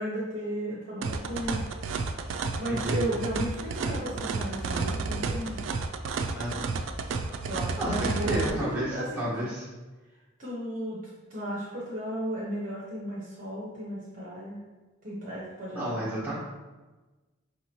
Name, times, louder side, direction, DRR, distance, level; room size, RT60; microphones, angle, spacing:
voice 1, 0.0-1.6 2.6-5.6 7.4-9.3 10.4-11.0 11.3-14.6 15.0-16.2, equal, 40° right, -6 dB, 0.8 m, -34 dB
sound 1, 1.0-8.5, right 4 dB, 70° right, 0.3 m, -31 dB
voice 2, 2.7-3.0 6.3-6.9 7.8-9.7 15.7-16.3, equal, 10° right, -10 dB, 1.3 m, -32 dB
4.9 x 2.8 x 2.9 m, 1.2 s
head